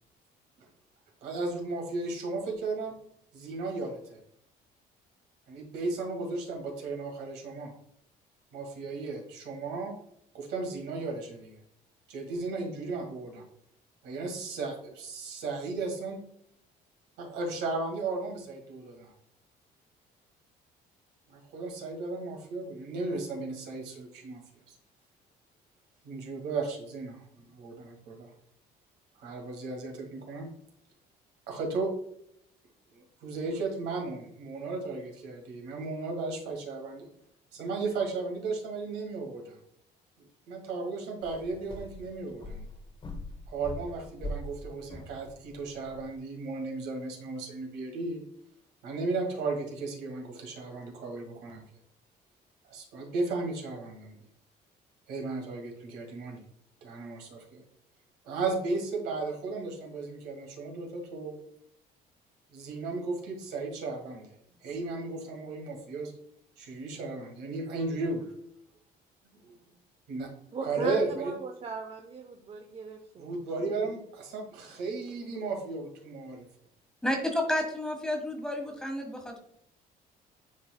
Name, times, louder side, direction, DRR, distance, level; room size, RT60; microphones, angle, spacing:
voice 1, 1.2-3.0 3.3-4.2 5.5-7.7 8.5-10.0 10.3-11.6 12.1-13.4 14.0-16.2 17.2-19.1 21.3-24.4 24.7-24.8 26.0-28.3 29.2-30.5 31.5-31.9 32.9-37.1 37.5-39.6 40.5-42.7 43.5-48.2 48.8-51.6 52.7-54.2 55.1-56.4 56.8-57.6 58.2-61.4 62.5-64.4 64.6-66.1 66.6-68.3 69.4-69.5 70.1-70.3 70.6-71.3 73.2-76.5, right 3 dB, 80° right, 2 dB, 2.0 m, -35 dB
sound 1, 41.2-46.2, left 1 dB, 30° left, 1.1 m, -42 dB
voice 2, 70.5-73.8, right 4 dB, 35° right, 3 dB, 0.7 m, -40 dB
voice 3, 77.0-79.4, left 1 dB, 5° left, 2 dB, 1.5 m, -31 dB
10.5 x 3.9 x 2.2 m, 0.72 s
cardioid pair, 110°, 17 cm